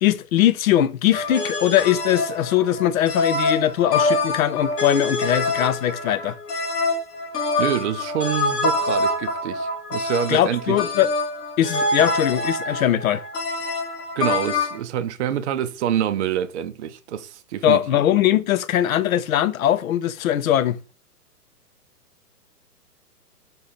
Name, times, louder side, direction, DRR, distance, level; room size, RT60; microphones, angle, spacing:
voice 1, 0.0-6.4 10.3-11.1 11.6-13.2 17.6-20.8, left 12 dB, 60° left, 0.6 m, -20 dB
sound 1, 1.1-14.8, left 2 dB, 75° left, 1.4 m, -25 dB
voice 2, 7.6-10.8 14.2-17.8, right 10 dB, 50° right, 0.5 m, -26 dB
3.8 x 2.8 x 4.0 m
hypercardioid pair, 130°, 48 cm